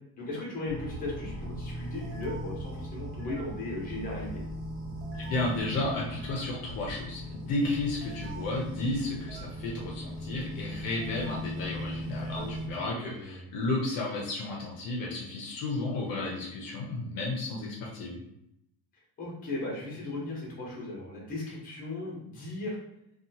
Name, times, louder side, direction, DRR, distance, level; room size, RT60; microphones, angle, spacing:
voice 1, 0.2-4.4 12.4-13.5 19.2-22.8, left 2 dB, 20° left, -4 dB, 0.8 m, -37 dB
sound 1, 0.7-12.7, equal, 55° right, 0.9 m, -38 dB
voice 2, 5.1-18.2, left 2 dB, 55° left, -2 dB, 0.6 m, -33 dB
2.7 x 2.3 x 2.7 m, 0.80 s
cardioid pair, 180°, 40 cm